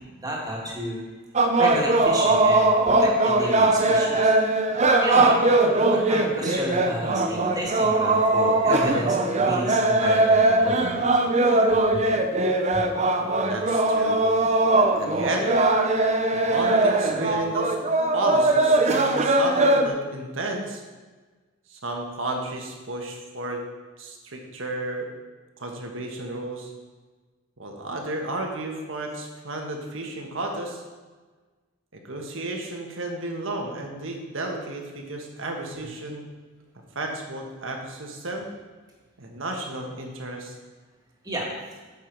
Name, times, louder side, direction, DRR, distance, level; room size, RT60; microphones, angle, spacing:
voice 1, 0.1-1.0 1.6-4.6 5.0-5.4 5.9-11.1 11.9-12.0 12.7-12.8 13.2-13.3 41.2-41.5, right 1 dB, 20° right, -2 dB, 1.9 m, -31 dB
sound 1, 1.4-19.9, right 2 dB, 35° right, 0.7 m, -20 dB
voice 2, 13.2-14.2 14.9-15.5 16.3-17.8 18.1-20.8 21.7-23.6 24.0-25.1 25.6-26.7 27.6-30.8 31.9-36.3 36.9-38.5 39.2-40.5, right 2 dB, 70° right, 2 dB, 1.5 m, -32 dB
9.1 x 7.3 x 4.6 m, 1.3 s
head